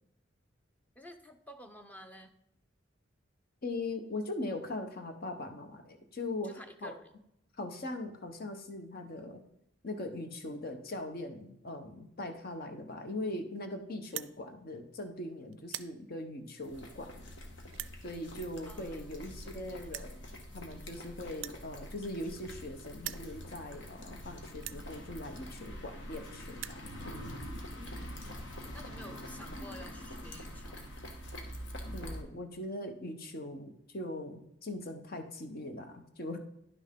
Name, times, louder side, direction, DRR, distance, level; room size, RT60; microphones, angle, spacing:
voice 1, 1.0-2.3 6.4-7.1 18.7-19.9 27.7-28.4 28.7-30.9, equal, 10° left, 7 dB, 0.7 m, -51 dB
voice 2, 3.6-6.9 7.6-9.4 9.8-17.2 18.0-26.9 31.9-36.4, left 2 dB, 50° left, 6 dB, 1.1 m, -40 dB
sound 1, 14.0-14.3 15.0-15.2 15.5-15.9 16.7-16.8 17.7-18.0 19.0-19.1 19.3-19.4 19.9-20.1 21.3-22.6 22.9-23.3 24.0-24.1 24.6-24.8 25.7-25.8 26.1-26.2 26.4-26.8, right 15 dB, 70° right, 0.4 m, -42 dB
sound 2, 16.6-32.2, equal, 70° left, 1.4 m, -45 dB
10.5 x 6.1 x 3.7 m, 0.78 s
head